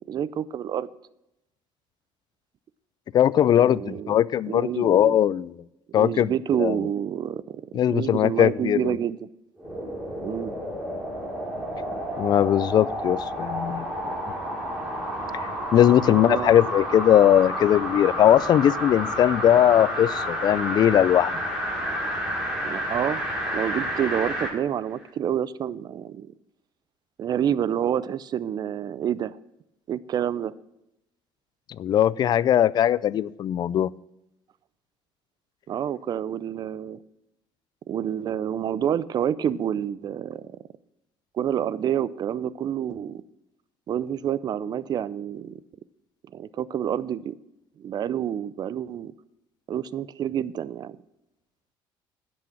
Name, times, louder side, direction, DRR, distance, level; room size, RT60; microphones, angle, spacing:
voice 1, 0.1-0.9 3.5-4.2 4.5-5.2 5.9-7.6 7.9-9.3 10.2-10.5 16.1-16.7 22.6-23.2 23.5-26.3 27.2-29.4 29.9-30.5 35.7-37.0 37.9-40.6 41.3-43.2 43.9-45.6 46.3-47.4 47.8-49.1 49.7-51.0, right 9 dB, 45° right, 18 dB, 0.5 m, -28 dB
voice 2, 3.1-5.5 5.9-6.3 6.6-6.8 7.7-9.0 12.2-13.9 15.3-21.3 31.8-33.9, left 10 dB, 45° left, 21 dB, 0.3 m, -20 dB
sound 1, 9.6-24.6 25.0-25.1, equal, 10° right, 3.6 m, -30 dB
10.5 x 6.2 x 7.5 m, 0.88 s
cardioid pair, 105°, 10 cm